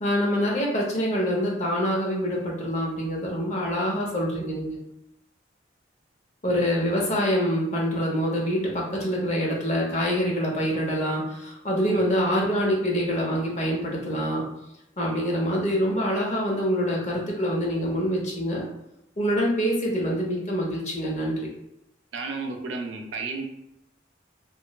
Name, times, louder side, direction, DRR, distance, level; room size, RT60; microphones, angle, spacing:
voice 1, 0.0-4.8 6.4-14.4 15.0-18.6 19.2-21.5, equal, 40° left, -3 dB, 0.6 m, -25 dB
voice 2, 22.1-23.4, right 4 dB, 80° right, 3 dB, 0.4 m, -33 dB
2.9 x 2.0 x 2.2 m, 0.84 s
head